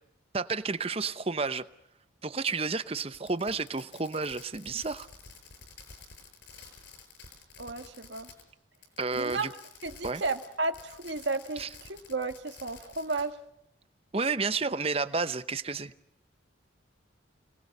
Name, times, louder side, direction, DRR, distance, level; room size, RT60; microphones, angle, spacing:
voice 1, 0.3-1.6 2.2-5.1 9.0-9.5 10.0-10.2 11.6-11.7 14.1-15.9, right 4 dB, 30° right, 0.8 m, -31 dB
Fireworks, 3.1-8.5 8.7-13.3, left 4 dB, 60° left, 6.8 m, -51 dB
voice 2, 7.6-8.3 9.1-9.5 9.8-13.4, right 3 dB, 65° right, 1.9 m, -33 dB
29.5 x 19.5 x 6.7 m
head